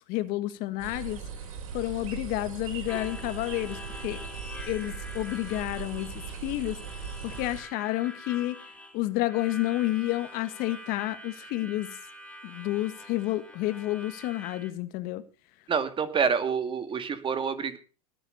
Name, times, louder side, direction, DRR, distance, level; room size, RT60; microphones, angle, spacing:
voice 1, 0.1-1.2 1.7-4.2 4.7-6.8 7.2-8.6 8.9-12.0 12.4-15.2, left 17 dB, 55° left, 1.6 m, -30 dB
sound 1, 0.8-7.6, right 6 dB, 75° right, 4.0 m, -39 dB
Harmonica, 2.9-14.7, left 1 dB, 5° left, 3.0 m, -45 dB
voice 2, 15.7-17.8, right 6 dB, 30° right, 2.3 m, -27 dB
19.5 x 8.0 x 6.8 m
hypercardioid pair, 100°, 18 cm